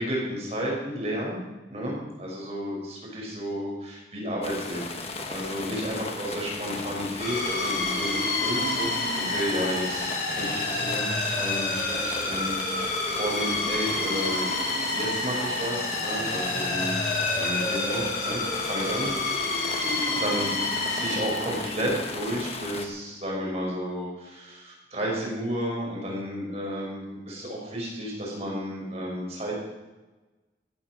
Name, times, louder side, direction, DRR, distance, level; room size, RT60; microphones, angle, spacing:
voice 1, 0.0-1.4 1.7-4.9 5.3-14.5 14.9-17.0 17.3-19.1 20.1-29.6, equal, 35° right, -3 dB, 6.3 m, -32 dB
sound 1, 4.4-22.9, left 3 dB, 35° left, 1.4 m, -37 dB
sound 2, 7.2-22.0, left 2 dB, 50° left, 5.2 m, -29 dB
16.5 x 10.5 x 6.5 m, 1.1 s
head